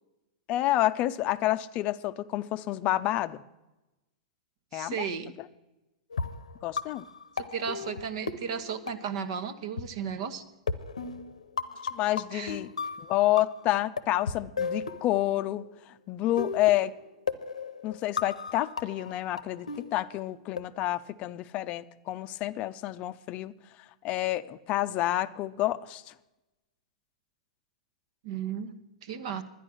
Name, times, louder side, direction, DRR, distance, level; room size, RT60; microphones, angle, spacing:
voice 1, 0.5-3.4 4.7-5.1 6.6-7.0 11.9-12.7 13.0-15.7 16.1-16.9 17.8-23.5 24.0-26.1, left 15 dB, 40° left, 13 dB, 0.5 m, -29 dB
voice 2, 4.7-5.3 7.5-10.4 12.3-12.6 28.2-29.4, right 7 dB, 60° right, 11 dB, 1.1 m, -34 dB
sound 1, 6.1-9.5 9.8-9.9 10.7-13.7 14.0-15.6 16.4-20.6, left 5 dB, 90° left, 0.7 m, -35 dB
11.0 x 10.0 x 6.2 m, 1.0 s
hypercardioid pair, 110°, 3 cm